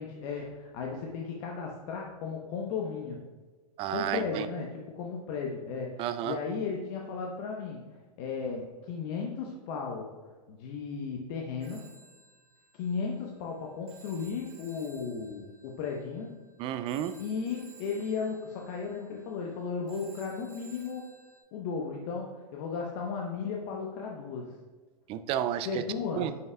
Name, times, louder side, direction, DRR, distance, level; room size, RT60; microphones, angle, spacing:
voice 1, 0.0-3.2 3.9-7.9 8.2-10.1 10.5-11.9 12.7-16.4 17.2-21.1 21.5-24.5 25.6-26.3, left 5 dB, 45° left, 0 dB, 0.9 m, -35 dB
voice 2, 3.8-4.5 6.0-6.4 16.6-17.2 25.1-25.8 26.2-26.3, right 11 dB, 25° right, 12 dB, 0.4 m, -31 dB
Telephone, 11.6-21.4, right 3 dB, 80° right, 2.0 m, -57 dB
9.1 x 5.7 x 2.3 m, 1.3 s
hypercardioid pair, 115°, 21 cm